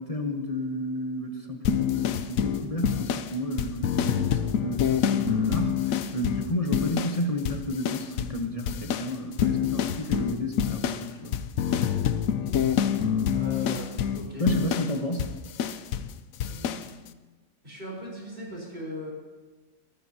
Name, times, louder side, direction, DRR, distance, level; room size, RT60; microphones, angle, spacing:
voice 1, 0.0-11.4 14.4-15.3, left 1 dB, 25° left, 2 dB, 0.8 m, -31 dB
sound 1, 1.6-7.2 7.4-8.4 8.7-16.1 16.4-16.9, left 8 dB, 70° left, 0.8 m, -27 dB
voice 2, 12.4-12.7 13.3-14.4 16.4-17.0 17.6-19.1, equal, 30° right, -4 dB, 4.4 m, -39 dB
23.0 x 13.5 x 2.8 m, 1.3 s
omnidirectional pair, 1.9 m